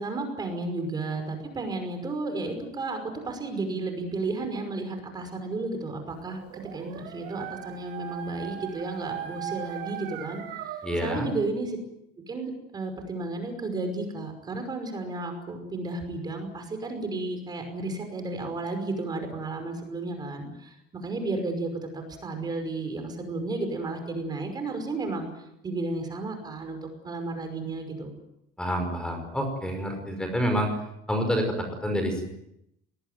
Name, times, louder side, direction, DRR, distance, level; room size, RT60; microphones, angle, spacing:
voice 1, 0.0-3.0 3.2-10.4 11.0-11.8 12.3-25.3 25.6-28.1, right 2 dB, 25° right, 6 dB, 5.6 m, -33 dB
Dog, 6.3-11.4, right 12 dB, 90° right, 4.4 m, -39 dB
voice 2, 10.8-11.3 28.6-30.7 31.1-32.3, equal, 5° left, 5 dB, 5.5 m, -28 dB
25.0 x 20.5 x 9.4 m, 0.80 s
cardioid pair, 160°, 17 cm